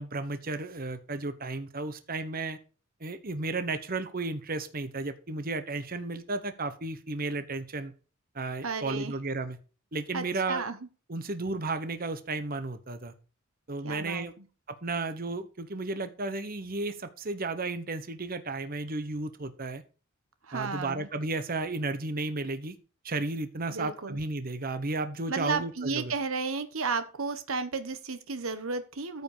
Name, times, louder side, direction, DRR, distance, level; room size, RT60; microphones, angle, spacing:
voice 1, 0.0-2.6 3.0-7.9 8.3-9.6 9.9-10.6 11.1-13.1 13.7-14.3 14.8-19.8 20.5-22.7 23.0-26.1, right 3 dB, 45° right, 9 dB, 1.2 m, -33 dB
voice 2, 8.6-9.1 10.1-10.8 13.8-14.3 20.4-21.1 23.7-24.2 25.3-29.2, right 4 dB, 75° right, 10 dB, 1.2 m, -33 dB
14.0 x 5.4 x 5.0 m, 0.35 s
head